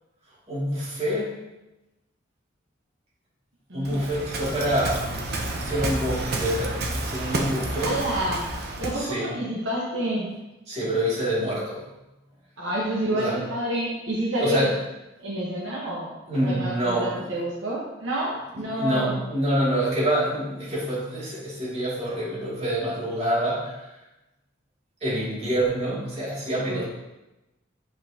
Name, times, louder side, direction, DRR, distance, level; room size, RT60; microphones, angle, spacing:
voice 1, 0.5-1.3 3.7-5.1 5.5-8.0 8.9-9.3 10.7-11.8 13.1-13.4 14.4-14.7 16.3-17.2 18.7-23.8 25.0-26.8, right 1 dB, 35° right, -7 dB, 2.5 m, -26 dB
voice 2, 3.7-4.0 7.8-8.4 8.8-10.3 12.6-14.7 15.2-19.2 26.6-26.8, right 1 dB, 75° right, -4 dB, 1.2 m, -29 dB
Waves surf, 3.8-9.1, right 2 dB, 55° right, 0.8 m, -30 dB
8.5 x 5.6 x 2.9 m, 0.98 s
head